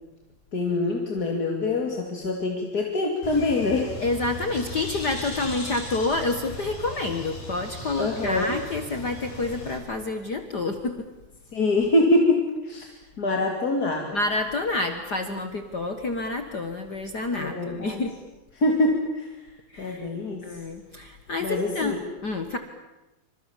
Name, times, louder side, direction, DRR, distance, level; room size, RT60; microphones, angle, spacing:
voice 1, 0.5-3.9 8.0-8.6 11.5-14.1 17.3-18.0 18.6-19.3 19.8-20.5 21.4-22.0, left 2 dB, 25° left, 1 dB, 2.6 m, -25 dB
Bird, 3.2-9.8, left 1 dB, 55° left, 8.0 m, -38 dB
voice 2, 4.0-11.1 14.1-18.1 19.7-20.1 20.4-21.9 22.2-22.6, left 2 dB, 75° left, 7 dB, 0.9 m, -28 dB
28.0 x 26.5 x 7.3 m, 1.0 s
omnidirectional pair, 4.6 m